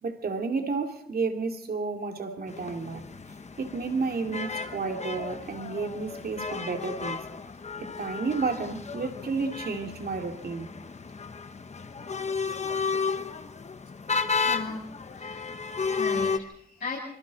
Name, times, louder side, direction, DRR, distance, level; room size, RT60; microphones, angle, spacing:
voice 1, 0.0-3.0 3.6-7.2 7.8-10.7, right 4 dB, 80° right, 2.6 m, -31 dB
sound 1, 2.5-16.4, left 5 dB, 45° left, 1.1 m, -33 dB
voice 2, 14.4-14.8 15.1-17.0, left 3 dB, 70° left, 7.7 m, -37 dB
25.5 x 25.0 x 4.1 m
wide cardioid pair, 135°, 16 cm